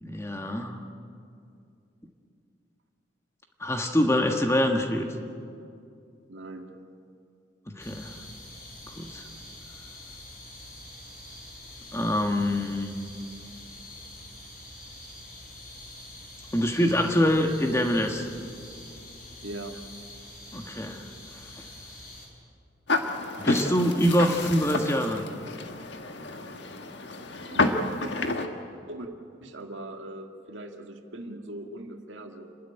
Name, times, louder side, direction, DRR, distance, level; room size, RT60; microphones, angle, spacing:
voice 1, 0.0-0.8 3.6-5.1 7.7-8.1 9.0-9.2 11.9-12.9 16.5-18.3 20.5-21.1 23.4-25.2, equal, 15° left, 4 dB, 1.4 m, -25 dB
voice 2, 6.3-6.7 19.4-19.8 27.5-28.1 28.9-29.1 29.4-32.5, right 1 dB, 80° right, 4 dB, 1.9 m, -40 dB
sound 1, 7.8-22.3, left 1 dB, 45° left, 5.5 m, -45 dB
sound 2, 22.9-28.5, left 2 dB, 65° left, 1.5 m, -30 dB
28.5 x 12.5 x 10.0 m, 2.5 s
head